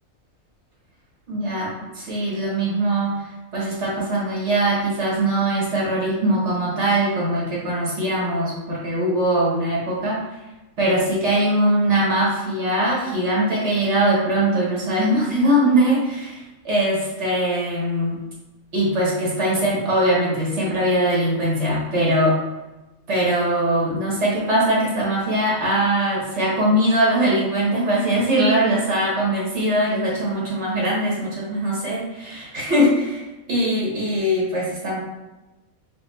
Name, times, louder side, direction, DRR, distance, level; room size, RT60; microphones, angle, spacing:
voice 1, 1.3-3.2 3.5-10.2 10.8-18.2 18.7-22.3 23.1-35.0, right 1 dB, 55° right, -5 dB, 1.5 m, -21 dB
4.3 x 2.1 x 4.0 m, 1.1 s
omnidirectional pair, 1.5 m